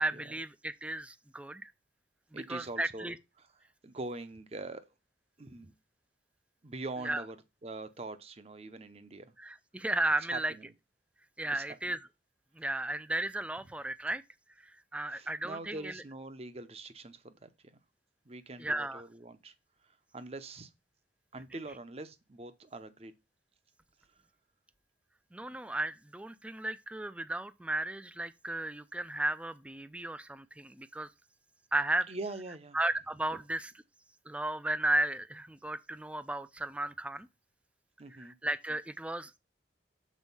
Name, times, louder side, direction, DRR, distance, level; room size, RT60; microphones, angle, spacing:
voice 1, 0.0-1.7 2.3-3.1 7.0-7.2 9.4-10.5 11.4-12.0 12.6-14.2 14.9-16.0 18.6-19.0 25.3-31.1 31.7-32.1 32.7-33.7 34.3-37.3 38.2-39.4, right 1 dB, 5° right, 0.3 m, -34 dB
voice 2, 2.3-3.5 3.8-4.8 5.4-5.7 6.6-9.3 10.3-10.7 11.4-12.0 15.1-17.8 18.2-19.5 19.8-20.7 21.3-23.1 32.1-32.8 38.0-38.4, right 2 dB, 35° right, 0.7 m, -43 dB
6.3 x 4.4 x 5.5 m
head